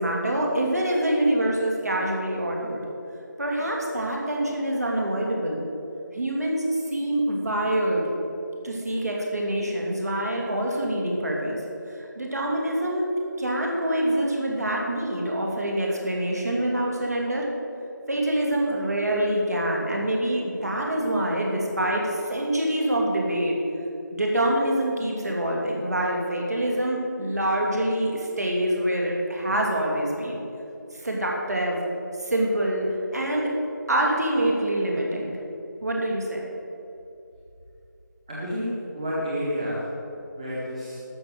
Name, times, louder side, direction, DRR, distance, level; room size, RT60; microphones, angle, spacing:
voice 1, 0.0-2.8 3.4-5.6 6.1-8.1 8.6-11.6 11.9-13.0 13.4-17.4 18.1-23.6 24.1-30.4 31.0-31.8 32.2-32.8 33.1-33.5 33.9-35.4 35.8-36.4, right 1 dB, 55° right, -1 dB, 2.8 m, -25 dB
voice 2, 38.3-39.9 40.3-41.0, equal, 20° right, -7 dB, 1.6 m, -30 dB
13.0 x 6.3 x 7.9 m, 2.7 s
figure-of-eight pair, 170°, 11 cm